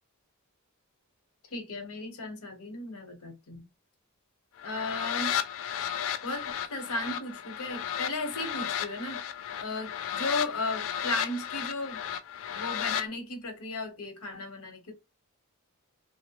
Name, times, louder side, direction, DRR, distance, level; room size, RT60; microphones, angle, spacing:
voice 1, 1.5-3.6 4.6-5.3 6.2-9.2 9.6-12.0 12.5-14.9, left 2 dB, 85° left, 1.0 m, -35 dB
sound 1, 4.6-13.1, left 9 dB, 65° left, 0.4 m, -34 dB
2.9 x 2.1 x 2.9 m
head